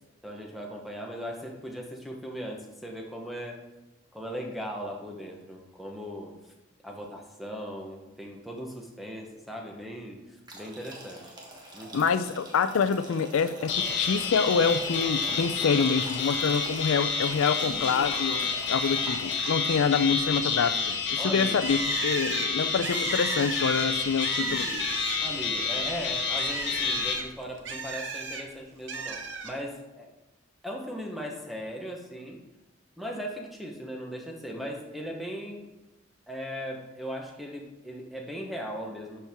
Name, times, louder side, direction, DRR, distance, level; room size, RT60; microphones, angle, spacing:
voice 1, 0.2-3.6 4.1-6.3 6.8-11.3 11.7-12.1 21.2-21.6 25.2-30.1 30.6-32.4 33.0-35.7 36.3-39.3, equal, ahead, 0 dB, 0.9 m, -38 dB
sound 1, 10.5-19.8, right 1 dB, 20° right, 1.1 m, -44 dB
voice 2, 11.9-13.7 14.0-24.7, left 5 dB, 90° left, 11 dB, 0.4 m, -26 dB
sound 2, 13.7-27.2, left 5 dB, 60° left, 1.0 m, -29 dB
Bird, 21.6-25.4 25.8-28.4 28.9-29.5, right 4 dB, 65° right, 0.8 m, -35 dB
11.0 x 4.5 x 3.6 m, 1.0 s
head